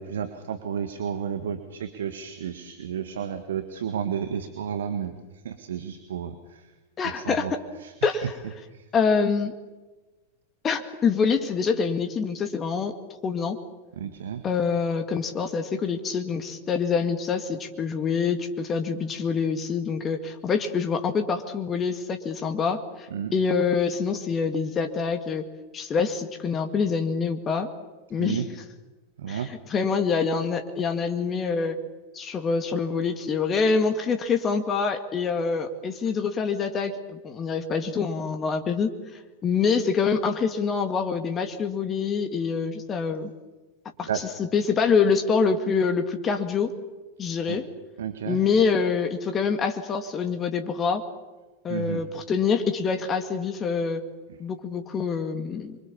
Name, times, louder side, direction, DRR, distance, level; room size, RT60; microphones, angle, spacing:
voice 1, 0.0-5.1 5.4-6.7 7.0-7.5 7.8-8.2 8.7-8.9 14.0-14.4 23.1-23.3 28.2-28.5 29.2-29.5 44.1-44.2 47.5-47.6 48.0-48.4 51.7-52.0 54.3-54.4, right 8 dB, 60° right, 8 dB, 1.8 m, -32 dB
voice 2, 7.0-7.6 8.0-8.3 8.9-9.5 10.6-12.9 13.2-13.6 14.4-25.4 25.7-27.7 28.1-28.5 29.3-31.8 32.1-43.3 44.0-44.1 44.4-46.7 47.2-47.6 48.3-51.0 51.6-54.0 54.4-55.8, left 5 dB, 25° left, 6 dB, 2.1 m, -25 dB
27.5 x 24.0 x 7.2 m, 1.2 s
figure-of-eight pair, 90°, 0 cm